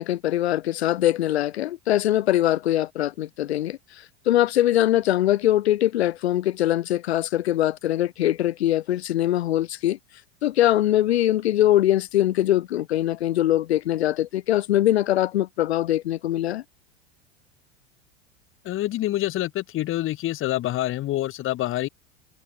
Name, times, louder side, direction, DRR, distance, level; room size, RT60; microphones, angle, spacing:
voice 1, 0.0-3.8 4.3-10.0 10.4-16.6, left 13 dB, 70° left, 2.0 m, -22 dB
voice 2, 18.6-21.9, left 15 dB, 40° left, 1.8 m, -26 dB
hypercardioid pair, 85°, 33 cm